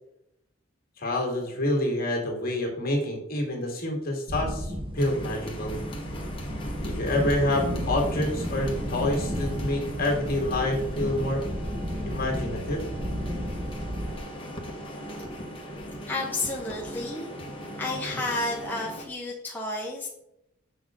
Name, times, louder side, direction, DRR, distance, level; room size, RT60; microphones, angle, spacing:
voice 1, 1.0-5.8 6.8-11.4 12.1-12.9 17.9-18.2, left 1 dB, 45° left, 0 dB, 2.2 m, -28 dB
sound 1, 4.3-14.2, equal, 25° right, 0.8 m, -33 dB
sound 2, 5.0-19.0, equal, 25° left, 1.3 m, -39 dB
voice 2, 16.1-17.5 17.7-20.1, left 2 dB, 10° left, -3 dB, 0.9 m, -31 dB
7.4 x 6.1 x 3.7 m, 0.82 s
head